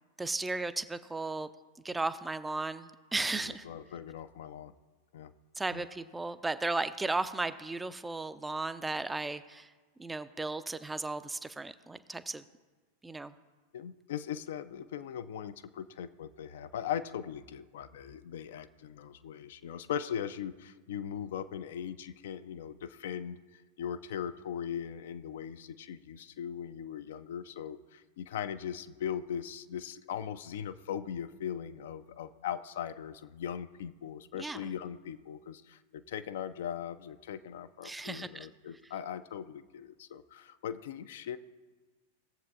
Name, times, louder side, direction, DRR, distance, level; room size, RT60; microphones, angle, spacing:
voice 1, 0.2-1.5 1.8-3.7 5.6-9.7 10.0-12.4 13.0-13.3 34.4-34.7 37.8-38.5, right 3 dB, 10° right, 13 dB, 0.4 m, -35 dB
voice 2, 3.2-4.7 5.1-5.3 5.7-5.8 13.7-41.4, left 9 dB, 55° left, 11 dB, 0.4 m, -39 dB
18.5 x 7.4 x 2.4 m, 1.3 s
figure-of-eight pair, 90°, 0 cm